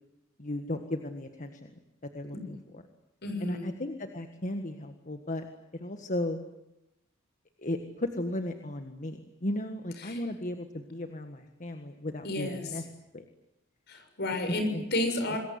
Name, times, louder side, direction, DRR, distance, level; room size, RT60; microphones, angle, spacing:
voice 1, 0.4-1.7 2.1-2.8 3.4-5.5 5.7-6.4 7.6-12.8 13.1-13.2 14.3-14.8 15.3-15.4, left 1 dB, 40° left, 7 dB, 1.7 m, -35 dB
voice 2, 3.2-3.6 10.0-10.2 12.2-12.6 13.9-15.4, left 1 dB, 55° left, 6 dB, 6.9 m, -31 dB
27.0 x 21.5 x 9.6 m, 0.90 s
head